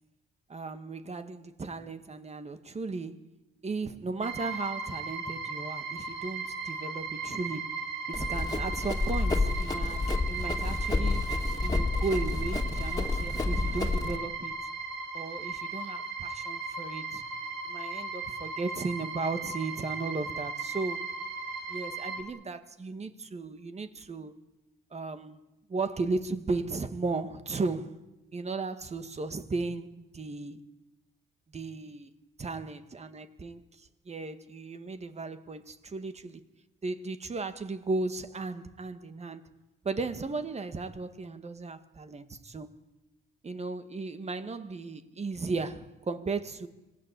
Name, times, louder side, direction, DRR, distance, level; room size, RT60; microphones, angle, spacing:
voice 1, 0.5-3.3 3.6-11.3 11.6-14.6 15.1-17.2 17.7-21.1 21.7-24.3 24.9-25.4 25.7-28.0 28.3-30.6 31.5-32.1 32.4-36.4 36.8-39.5 39.8-42.7 43.4-46.7, right 3 dB, 35° right, 1.9 m, -35 dB
sound 1, 4.2-22.2, right 4 dB, 80° right, 4.1 m, -37 dB
Run, 8.1-14.2, left 3 dB, 20° left, 3.0 m, -29 dB
26.5 x 19.5 x 8.4 m
cardioid pair, 90°, 20 cm